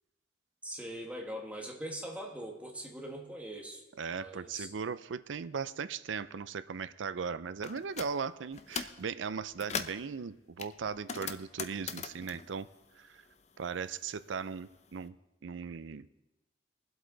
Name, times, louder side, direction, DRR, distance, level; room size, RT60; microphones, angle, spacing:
voice 1, 0.6-3.8 4.1-4.7, right 1 dB, 10° right, 0 dB, 1.8 m, -42 dB
voice 2, 4.0-12.7 13.0-13.2 13.6-15.2 15.4-16.2, right 6 dB, 80° right, 14 dB, 0.5 m, -38 dB
sound 1, 7.6-8.1 8.5-9.0 9.4-10.1 10.6-13.5 13.8-14.9, left 6 dB, 35° left, 0.6 m, -40 dB
21.5 x 7.9 x 3.9 m, 1.0 s
head